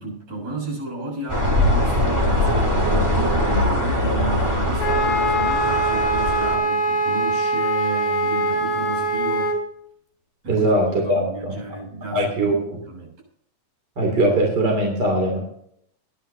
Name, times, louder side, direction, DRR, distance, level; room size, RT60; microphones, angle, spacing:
voice 1, 0.0-9.6 10.4-10.7 11.0-12.5 12.9-13.1, right 2 dB, 60° right, -3 dB, 8.3 m, -32 dB
sound 1, 1.3-6.6, left 1 dB, 10° right, 2.8 m, -21 dB
Wind instrument woodwind instrument, 4.8-9.6, right 1 dB, 80° left, 6.1 m, -22 dB
voice 2, 10.5-11.5 12.1-12.8 14.0-15.4, right 1 dB, 35° right, 0 dB, 3.3 m, -21 dB
22.5 x 10.5 x 2.8 m, 0.70 s
omnidirectional pair, 3.6 m